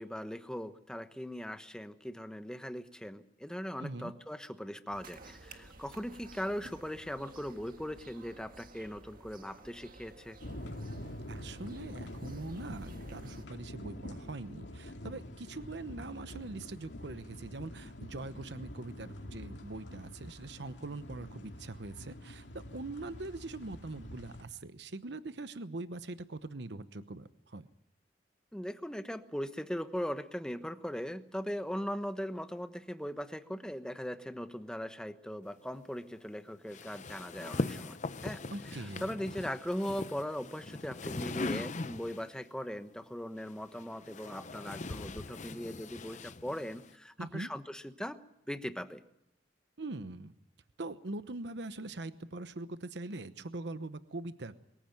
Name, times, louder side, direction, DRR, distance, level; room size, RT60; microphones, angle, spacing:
voice 1, 0.0-10.4 28.5-38.0 38.2-38.4 38.7-48.2 48.5-49.0, equal, 5° left, 9 dB, 1.1 m, -39 dB
voice 2, 3.8-4.1 11.3-27.7 38.5-39.2 47.2-47.5 49.8-50.3 50.8-54.6, right 2 dB, 70° right, 12 dB, 1.0 m, -42 dB
sound 1, 4.9-13.4, right 2 dB, 50° right, 1.7 m, -54 dB
sound 2, 10.4-24.4, left 1 dB, 85° left, 2.4 m, -46 dB
sound 3, 36.7-42.3 43.4-46.9, left 3 dB, 45° left, 0.8 m, -40 dB
23.0 x 15.5 x 9.2 m, 0.81 s
head